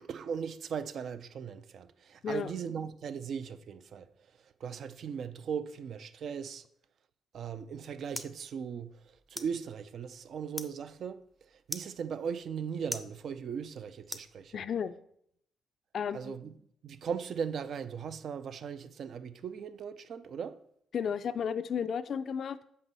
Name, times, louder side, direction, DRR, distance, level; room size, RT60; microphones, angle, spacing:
voice 1, 0.0-6.6 7.3-14.6 16.1-16.5 16.8-20.6, right 7 dB, 60° right, 0.5 m, -38 dB
sound 1, 7.3-14.9, left 1 dB, ahead, 0.5 m, -47 dB
voice 2, 14.5-14.9 15.9-16.4 20.9-22.8, left 7 dB, 55° left, 0.4 m, -33 dB
7.5 x 5.3 x 4.0 m
cardioid pair, 90°, 0 cm